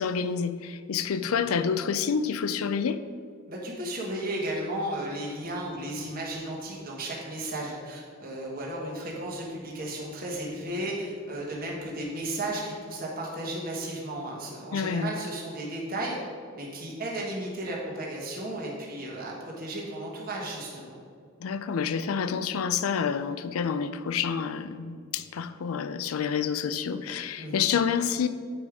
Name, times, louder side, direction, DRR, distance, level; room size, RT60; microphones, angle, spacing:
voice 1, 0.0-3.0 14.7-15.1 21.4-28.3, left 6 dB, 80° left, 12 dB, 0.4 m, -28 dB
voice 2, 3.5-16.2 16.5-21.0 27.4-27.6, right 1 dB, 45° right, -3 dB, 1.4 m, -34 dB
8.6 x 5.0 x 4.8 m, 2.2 s
head